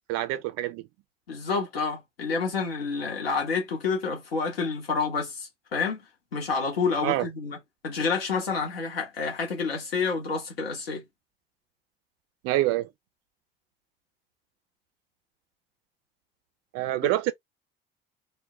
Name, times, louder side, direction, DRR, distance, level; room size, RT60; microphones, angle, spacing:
voice 1, 0.1-0.8 7.0-7.3 12.4-12.9 16.7-17.3, right 15 dB, 60° right, 0.5 m, -26 dB
voice 2, 1.3-6.1 6.3-7.6 7.8-11.0 17.0-17.1, left 5 dB, 85° left, 0.9 m, -29 dB
2.1 x 2.0 x 3.3 m
figure-of-eight pair, 55°, 29 cm